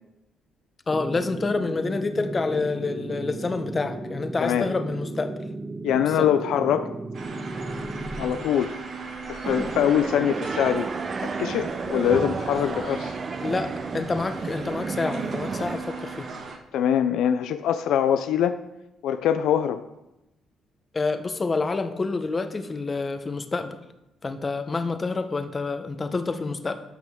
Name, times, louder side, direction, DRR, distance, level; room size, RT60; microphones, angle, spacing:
voice 1, 0.9-5.3 6.2-6.3 13.4-16.3 20.9-23.8 24.2-26.8, left 3 dB, 30° left, 8 dB, 0.9 m, -28 dB
sound 1, 0.9-8.4, right 2 dB, 20° right, 1.1 m, -35 dB
voice 2, 5.8-6.9 8.2-8.7 9.3-10.9 11.4-13.2 16.7-18.6 19.0-19.8, left 9 dB, 85° left, 10 dB, 0.4 m, -23 dB
sound 2, 7.1-16.6, right 4 dB, 60° right, 1.4 m, -37 dB
sound 3, 9.4-15.8, right 4 dB, 40° right, 0.6 m, -32 dB
13.5 x 5.9 x 3.6 m, 0.91 s
cardioid pair, 90°, 0 cm